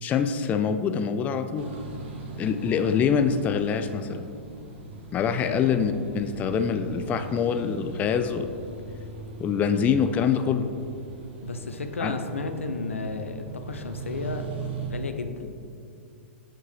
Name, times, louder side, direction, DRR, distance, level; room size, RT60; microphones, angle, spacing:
voice 1, 0.0-1.7 2.4-4.3 5.1-8.5 9.4-10.7 12.0-12.1, left 7 dB, 25° left, 8 dB, 0.3 m, -25 dB
sound 1, 1.6-14.9, right 3 dB, 60° right, 1.3 m, -40 dB
voice 2, 5.2-5.6 11.4-14.5 14.8-15.6, left 3 dB, 85° left, 7 dB, 0.5 m, -33 dB
7.2 x 5.2 x 3.4 m, 2.4 s
figure-of-eight pair, 110°, 7 cm